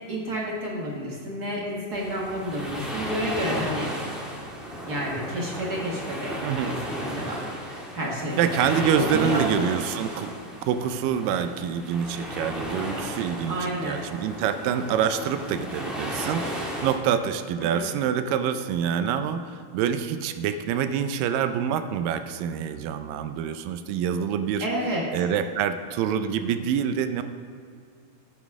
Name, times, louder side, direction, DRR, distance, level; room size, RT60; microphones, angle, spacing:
voice 1, 0.1-3.9 4.7-7.4 7.7-8.5 8.9-9.7 13.5-14.1 17.6-17.9 24.6-25.0, right 1 dB, 55° right, -3 dB, 1.1 m, -30 dB
sound 1, 1.9-17.0, equal, ahead, 0.5 m, -34 dB
voice 2, 8.4-10.3 10.6-24.7 25.1-27.2, right 8 dB, 80° right, 10 dB, 2.2 m, -26 dB
13.5 x 9.5 x 3.6 m, 2.2 s
omnidirectional pair, 4.0 m